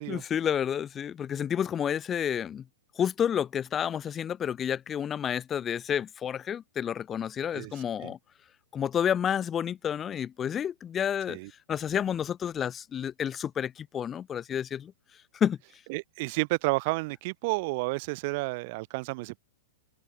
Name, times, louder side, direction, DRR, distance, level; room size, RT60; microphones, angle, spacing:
voice 1, 0.1-2.7 3.0-8.2 8.7-11.4 11.7-14.9 15.3-15.6, left 8 dB, 25° left, 5.5 m, -30 dB
voice 2, 15.9-19.4, right 26 dB, 50° right, 1.8 m, -31 dB
hypercardioid pair, 120°, 0 cm